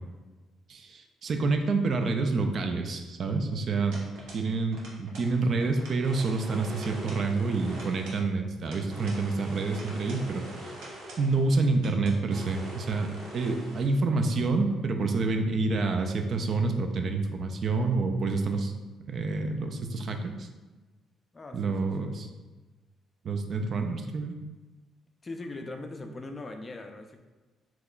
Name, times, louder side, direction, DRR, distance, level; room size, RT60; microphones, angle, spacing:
voice 1, 0.7-4.0 4.3-10.4 11.2-18.7 19.1-20.5 21.5-22.3 23.2-24.3, right 3 dB, 50° right, 5 dB, 0.4 m, -28 dB
sound 1, 3.9-4.5 4.7-5.3 5.6-6.4 6.7-7.3 7.7-9.2 9.7-10.3 10.7-11.3 11.7-12.2, right 1 dB, 90° right, 0.8 m, -48 dB
sound 2, 6.0-8.2 8.9-11.5 12.3-13.9 14.7-14.8, right 1 dB, 70° right, 1.1 m, -43 dB
voice 2, 21.3-22.1 25.2-27.2, left 2 dB, 25° left, 5 dB, 0.4 m, -41 dB
2.9 x 2.2 x 3.8 m, 1.2 s
cardioid pair, 100°, 0 cm